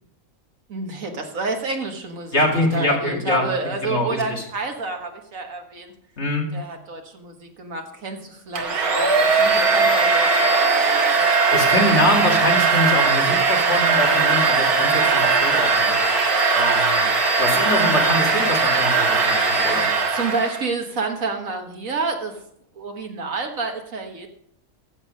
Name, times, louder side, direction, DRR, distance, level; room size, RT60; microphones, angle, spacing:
voice 1, 0.7-2.4 2.7-5.9 6.5-11.3 19.7-22.4 22.7-24.3, right 3 dB, 60° right, 4 dB, 1.7 m, -29 dB
voice 2, 2.3-3.4 3.8-4.4 6.2-6.5 11.5-17.1 17.4-19.9, left 1 dB, 45° left, 0 dB, 2.4 m, -24 dB
Domestic sounds home sounds, 8.6-20.7, right 4 dB, 75° right, 2.0 m, -19 dB
14.5 x 6.9 x 5.3 m, 0.70 s
omnidirectional pair, 1.6 m